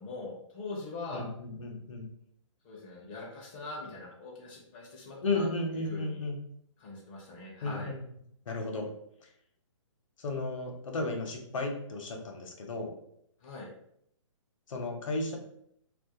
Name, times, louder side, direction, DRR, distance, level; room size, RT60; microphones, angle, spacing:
voice 1, 0.0-1.3 2.6-5.5 5.7-6.2 6.8-7.9 13.4-13.7, left 3 dB, 20° left, -3 dB, 0.4 m, -42 dB
voice 2, 1.1-2.1 5.2-6.4 7.6-8.0 8.5-8.9 10.2-12.9 14.7-15.4, left 2 dB, 75° left, 2 dB, 0.7 m, -34 dB
2.3 x 2.1 x 2.7 m, 0.71 s
hypercardioid pair, 165°, 17 cm